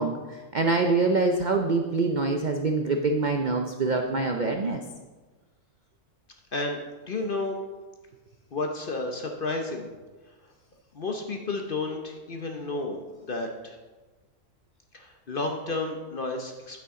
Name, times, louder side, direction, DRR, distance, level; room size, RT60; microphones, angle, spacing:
voice 1, 0.0-4.8, right 3 dB, 70° right, 4 dB, 0.4 m, -25 dB
voice 2, 7.1-7.6 8.5-9.9 10.9-13.8 14.9-16.8, left 3 dB, 45° left, 3 dB, 0.8 m, -31 dB
9.2 x 8.4 x 3.7 m, 1.3 s
omnidirectional pair, 1.6 m